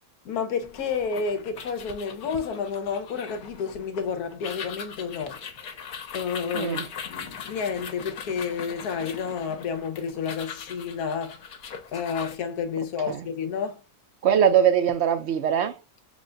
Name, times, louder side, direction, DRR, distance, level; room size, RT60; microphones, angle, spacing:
voice 1, 0.2-5.9 6.1-11.5 11.9-13.8, left 6 dB, 85° left, 1.3 m, -30 dB
sound 1, 0.6-12.4, left 7 dB, 70° left, 1.3 m, -40 dB
voice 2, 6.5-6.8 13.1-13.3 14.2-15.8, right 8 dB, 60° right, 0.7 m, -21 dB
6.1 x 2.2 x 3.7 m
omnidirectional pair, 1.6 m